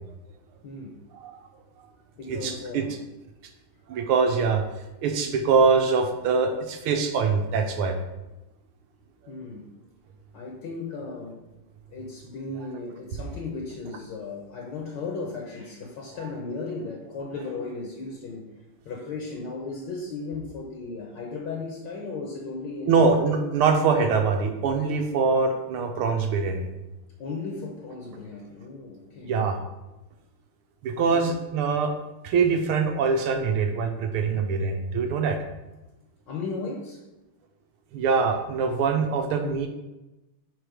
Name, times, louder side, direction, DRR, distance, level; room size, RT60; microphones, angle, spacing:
voice 1, 0.6-1.0 2.2-3.0 9.3-9.7 10.3-11.4 11.9-18.4 18.8-23.0 27.2-29.3 30.9-31.3 36.3-37.0, left 3 dB, 65° left, 0 dB, 1.4 m, -36 dB
voice 2, 2.3-2.8 3.9-4.6 5.0-8.0 22.9-26.7 29.3-29.6 30.8-31.9 32.2-35.4 37.9-39.7, right 5 dB, 90° right, 5 dB, 1.7 m, -23 dB
4.7 x 4.7 x 5.0 m, 1.0 s
omnidirectional pair, 2.3 m